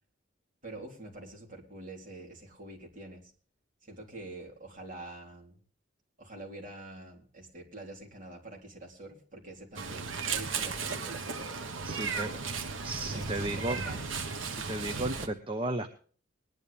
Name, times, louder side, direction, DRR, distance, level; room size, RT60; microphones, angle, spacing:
voice 1, 0.6-3.3 3.8-5.6 6.2-11.6 11.9-12.5 13.0-14.1, right 2 dB, 45° right, 0 dB, 3.8 m, -46 dB
Meow, 9.8-15.3, right 5 dB, 85° right, 1.3 m, -35 dB
voice 2, 11.8-12.3 12.8-13.8 14.5-15.9, right 2 dB, 25° right, 6 dB, 1.0 m, -34 dB
21.0 x 11.0 x 3.4 m, 0.43 s
head